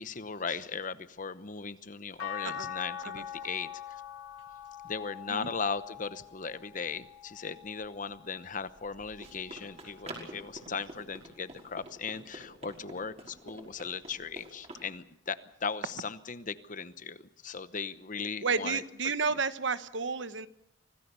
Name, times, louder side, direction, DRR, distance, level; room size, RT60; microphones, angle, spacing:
voice 1, 0.0-3.7 4.8-17.2 17.4-18.8, left 5 dB, 40° left, 14 dB, 0.9 m, -38 dB
sound 1, 2.2-8.5 9.1-10.4 11.8-11.9, left 9 dB, 80° left, 1.8 m, -44 dB
Run, 8.7-14.9, right 1 dB, 35° right, 5.4 m, -48 dB
voice 2, 18.4-20.5, right 4 dB, 65° right, 12 dB, 1.2 m, -31 dB
25.5 x 18.0 x 6.9 m, 0.75 s
head